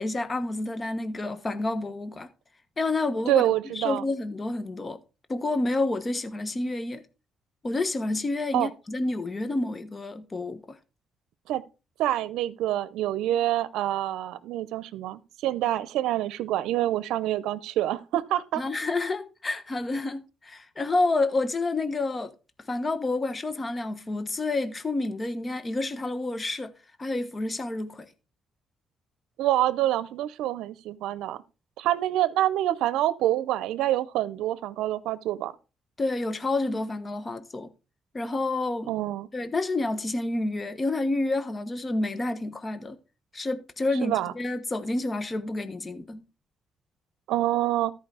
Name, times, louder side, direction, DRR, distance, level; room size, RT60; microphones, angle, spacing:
voice 1, 0.0-2.3 2.8-3.4 3.7-5.0 5.3-7.0 7.6-10.8 18.5-22.3 22.7-26.7 27.0-28.1 36.0-37.7 38.1-38.9 39.3-43.0 43.3-46.2, left 2 dB, 30° left, 1.2 m, -29 dB
voice 2, 3.3-4.0 8.5-8.7 11.5-11.6 12.0-18.6 29.4-31.4 31.8-35.5 38.9-39.3 44.0-44.3 47.3-47.9, right 13 dB, 90° right, 0.6 m, -26 dB
13.5 x 5.0 x 4.8 m
cardioid pair, 90°, 0 cm